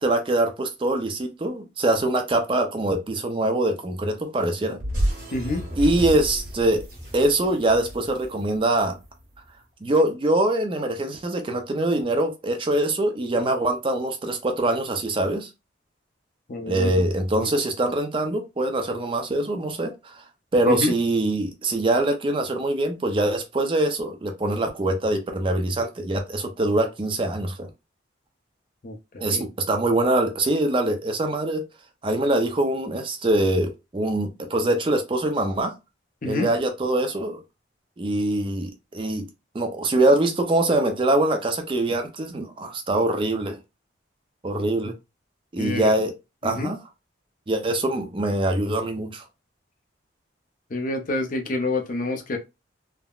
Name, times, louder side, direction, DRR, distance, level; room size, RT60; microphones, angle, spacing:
voice 1, 0.0-4.8 5.8-6.8 7.1-9.0 9.8-15.5 16.7-20.2 20.5-27.7 29.2-31.6 32.0-35.7 36.2-37.4 38.0-39.2 39.5-43.6 44.4-44.9 45.5-46.1 46.4-46.8 47.5-49.2, right 1 dB, 25° right, 0.4 m, -23 dB
sound 1, 4.8-9.2, equal, 45° right, 1.3 m, -31 dB
voice 2, 5.3-5.6 16.5-17.0 17.4-17.5 20.7-20.9 28.8-29.5 36.2-36.5 45.6-45.9 46.4-46.7 50.7-52.4, left 2 dB, 45° left, 0.5 m, -28 dB
3.5 x 2.0 x 2.3 m
head